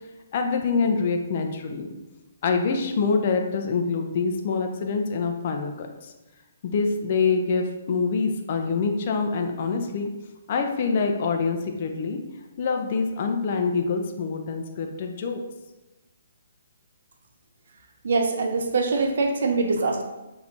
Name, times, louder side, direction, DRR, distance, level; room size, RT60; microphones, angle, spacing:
voice 1, 0.3-1.9 2.4-6.1 6.6-10.1 10.5-12.2 12.6-15.4, left 4 dB, 45° left, 4 dB, 0.6 m, -25 dB
voice 2, 18.0-20.0, right 3 dB, 65° right, 4 dB, 0.7 m, -23 dB
6.3 x 2.8 x 2.8 m, 1.1 s
figure-of-eight pair, 135°, 0 cm